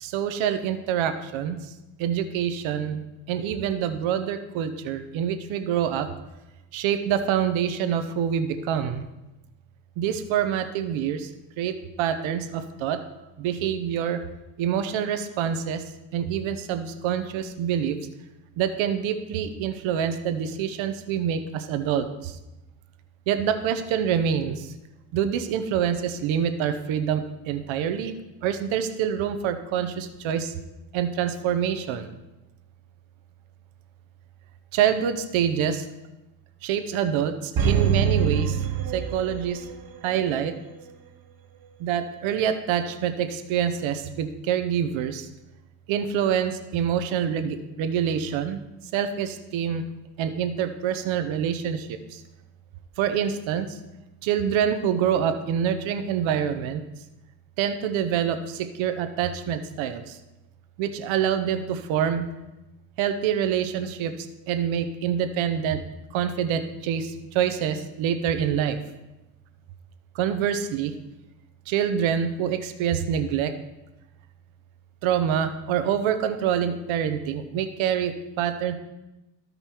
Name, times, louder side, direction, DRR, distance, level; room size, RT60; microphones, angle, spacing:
voice 1, 0.0-1.6 2.0-3.0 3.3-6.1 6.7-9.0 10.0-11.3 11.6-13.0 13.4-14.2 14.6-15.8 16.1-18.0 18.6-22.3 23.3-24.6 25.1-28.1 28.4-30.5 30.9-32.1 34.7-35.8 36.6-37.3 37.6-38.6 38.9-39.6 40.0-40.5 41.8-45.3 45.9-48.6 48.9-49.8 50.2-52.0 53.0-53.7 54.2-56.8 57.6-60.0 60.8-62.3 63.0-64.1 64.5-65.8 66.1-68.8 70.2-70.9 71.7-73.5 75.0-78.7, right 8 dB, 75° right, 9 dB, 0.9 m, -26 dB
sound 1, 37.6-39.7 40.1-40.2, right 7 dB, 45° right, 1.1 m, -24 dB
14.5 x 5.3 x 3.0 m, 0.98 s
supercardioid pair, 75°, 48 cm